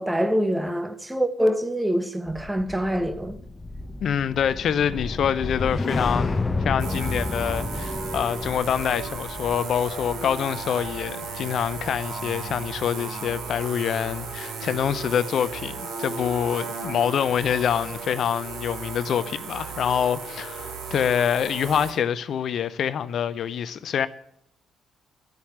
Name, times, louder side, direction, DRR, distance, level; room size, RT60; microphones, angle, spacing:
voice 1, 0.0-3.4, equal, 10° right, 1.2 m, -25 dB
sound 1, 2.3-12.7 13.0-13.3, left 2 dB, 20° left, 1.0 m, -31 dB
voice 2, 4.0-24.1, left 8 dB, 55° left, 0.6 m, -26 dB
sound 2, 6.8-21.9, right 4 dB, 60° right, 2.2 m, -35 dB
11.0 x 8.5 x 8.2 m
figure-of-eight pair, 40°, 0 cm